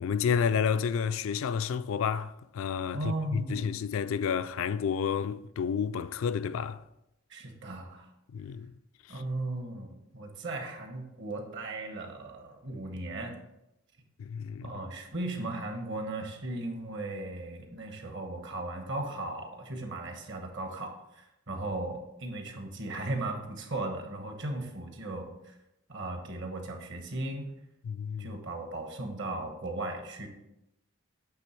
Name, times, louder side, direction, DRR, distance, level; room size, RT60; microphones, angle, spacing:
voice 1, 0.0-3.0 3.3-6.8 8.3-8.7 14.2-14.7 27.8-28.3, left 7 dB, 65° left, 0.3 m, -30 dB
voice 2, 2.9-3.7 7.3-8.1 9.1-13.4 14.6-25.5 25.9-27.5 28.2-30.3, right 2 dB, 55° right, 1.1 m, -37 dB
8.4 x 3.4 x 4.4 m
head